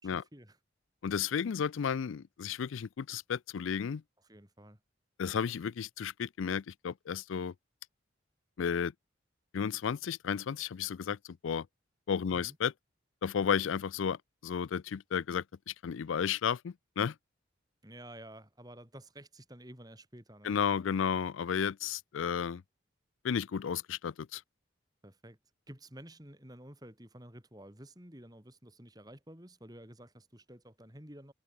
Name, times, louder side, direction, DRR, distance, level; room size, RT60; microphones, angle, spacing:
voice 1, 0.0-0.6 4.2-4.8 12.3-12.6 17.8-20.6 25.0-25.4 25.7-31.3, right 1 dB, 20° right, 4.2 m, -51 dB
voice 2, 1.0-4.0 5.2-7.5 8.6-8.9 9.5-11.2 11.4-11.7 12.1-12.7 13.2-17.1 20.4-22.6 23.2-24.4, left 7 dB, 80° left, 0.4 m, -33 dB
head